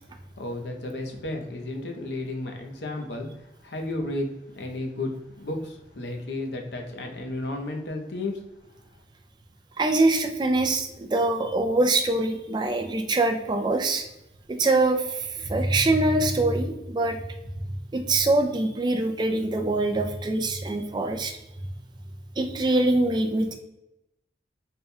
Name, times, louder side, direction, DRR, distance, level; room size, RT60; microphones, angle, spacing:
voice 1, 0.4-5.1 5.4-8.7, left 2 dB, 70° left, 3 dB, 0.7 m, -33 dB
voice 2, 9.8-14.1 14.5-17.2 17.9-21.4 22.4-23.6, right 2 dB, 25° right, 4 dB, 0.3 m, -24 dB
3.4 x 2.2 x 4.2 m, 0.89 s
head